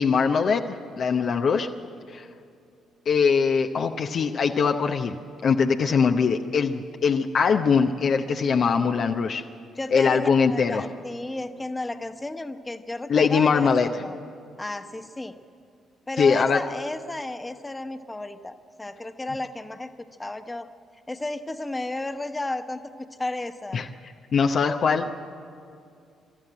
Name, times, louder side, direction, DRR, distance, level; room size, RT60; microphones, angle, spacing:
voice 1, 0.0-1.7 2.1-2.3 3.1-5.2 5.4-9.4 9.9-10.8 13.1-13.9 16.2-16.6 23.7-23.9 24.3-25.1, left 5 dB, 55° left, 4 dB, 0.8 m, -22 dB
voice 2, 9.8-14.2 14.6-15.4 16.1-19.9 20.2-20.7 21.1-23.8, left 2 dB, 20° left, 8 dB, 1.2 m, -33 dB
25.0 x 13.0 x 8.9 m, 2.4 s
hypercardioid pair, 45°, 0 cm